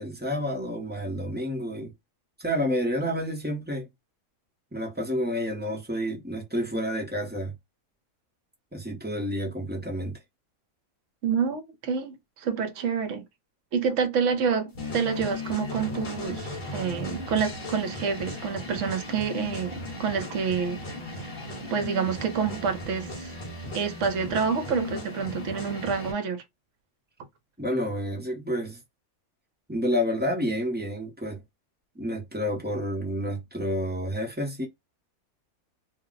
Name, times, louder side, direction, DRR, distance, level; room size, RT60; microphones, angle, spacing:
voice 1, 0.0-1.9 2.4-3.9 4.7-7.5 8.7-10.2 23.6-23.7 27.6-28.8 29.7-31.4 31.9-34.7, equal, 10° right, 0.6 m, -29 dB
voice 2, 11.2-13.3 13.7-20.8 21.7-23.3 23.7-26.4, right 6 dB, 65° right, 1.0 m, -28 dB
sound 1, 14.8-26.1, left 2 dB, 40° left, 1.1 m, -36 dB
2.6 x 2.0 x 3.9 m
omnidirectional pair, 1.5 m